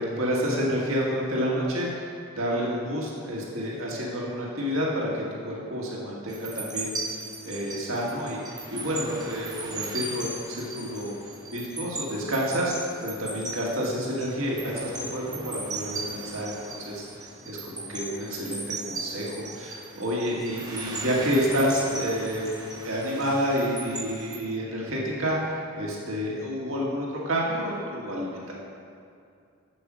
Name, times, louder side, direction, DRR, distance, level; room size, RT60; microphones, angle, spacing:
voice 1, 0.0-2.1 2.4-11.1 11.5-17.0 17.5-22.5 22.8-28.5, equal, 80° right, -4 dB, 1.9 m, -29 dB
sound 1, 6.3-24.4, right 2 dB, 20° right, 0.9 m, -38 dB
8.2 x 8.0 x 6.2 m, 2.4 s
head